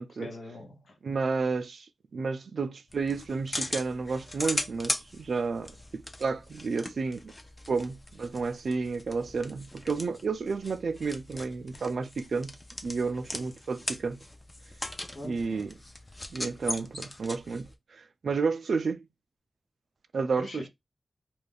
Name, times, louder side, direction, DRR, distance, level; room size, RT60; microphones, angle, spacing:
voice 1, 0.2-1.0 15.2-15.7 20.4-20.7, left 2 dB, 70° left, 0.7 m, -42 dB
voice 2, 1.0-7.3 7.7-12.5 12.8-14.2 15.2-15.7 16.3-19.1 20.1-20.7, right 4 dB, 75° right, 0.3 m, -31 dB
sound 1, 2.9-17.7, left 1 dB, 25° left, 0.4 m, -39 dB
2.3 x 2.2 x 3.3 m
wide cardioid pair, 105°, 0 cm